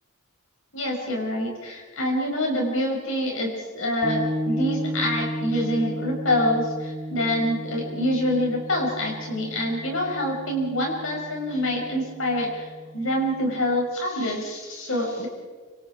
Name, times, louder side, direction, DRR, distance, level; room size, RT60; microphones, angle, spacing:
voice 1, 0.7-12.7 12.9-15.3, left 1 dB, 65° left, 0 dB, 6.2 m, -26 dB
sound 1, 4.0-13.7, equal, 20° right, 3.4 m, -34 dB
27.0 x 26.0 x 4.8 m, 1.4 s
head